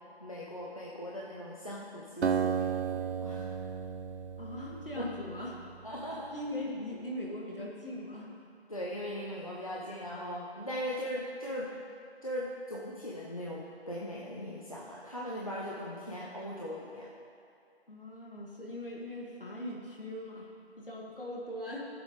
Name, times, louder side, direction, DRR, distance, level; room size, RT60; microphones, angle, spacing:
voice 1, 0.0-3.5 5.0-5.1 5.8-6.3 8.7-11.7 12.2-17.1, equal, 35° left, -5 dB, 0.8 m, -39 dB
Acoustic guitar, 2.2-5.8, right 7 dB, 90° right, 0.6 m, -34 dB
voice 2, 4.4-5.6 6.3-8.3 17.9-20.5 20.8-21.8, left 1 dB, 55° left, -3 dB, 2.1 m, -40 dB
14.5 x 7.6 x 3.2 m, 2.4 s
figure-of-eight pair, 175°, 33 cm